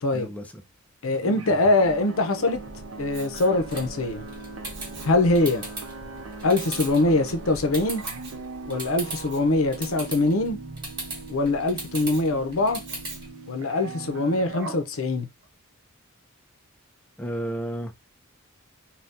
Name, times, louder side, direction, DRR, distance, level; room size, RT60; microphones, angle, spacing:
voice 1, 0.1-0.6 17.2-17.9, right 1 dB, 5° left, 0.5 m, -32 dB
voice 2, 1.0-2.6 3.0-4.2 5.0-5.7 6.4-8.0 8.7-10.6 11.3-12.8 13.5-15.3, left 2 dB, 70° left, 0.7 m, -23 dB
sound 1, 1.2-14.6, right 3 dB, 85° right, 0.6 m, -40 dB
Respiratory sounds, 3.1-3.6 4.7-5.2 6.6-7.0 8.0-8.5 9.1-9.5 11.9-12.3 12.9-13.4 14.5-14.9 15.4-15.5, right 3 dB, 55° right, 1.0 m, -41 dB
sound 2, 3.5-13.3, right 2 dB, 20° right, 1.3 m, -39 dB
2.7 x 2.3 x 3.4 m
head